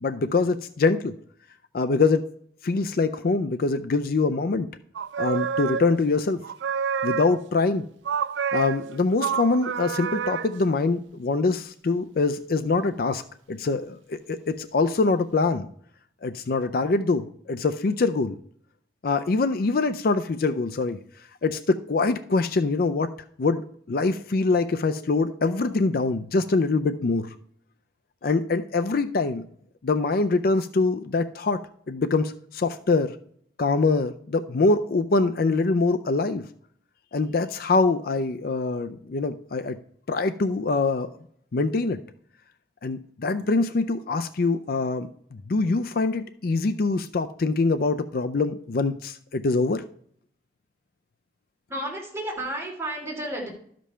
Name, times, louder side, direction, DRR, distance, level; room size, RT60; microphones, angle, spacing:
voice 1, 0.0-1.2 1.7-2.2 2.6-4.7 5.2-6.4 7.0-7.8 8.5-13.2 13.5-15.7 16.2-18.4 19.0-21.0 21.4-23.1 23.4-27.3 28.2-29.4 29.8-33.2 33.6-36.4 37.1-39.8 40.1-41.1 41.5-42.0 42.8-49.8, left 3 dB, 55° left, 10 dB, 0.5 m, -24 dB
sound 1, 4.9-6.2 6.4-7.6 8.0-10.6, right 7 dB, 80° right, 0.3 m, -29 dB
voice 2, 51.7-53.5, right 1 dB, 15° right, -3 dB, 2.9 m, -32 dB
12.5 x 5.2 x 5.5 m, 0.64 s
head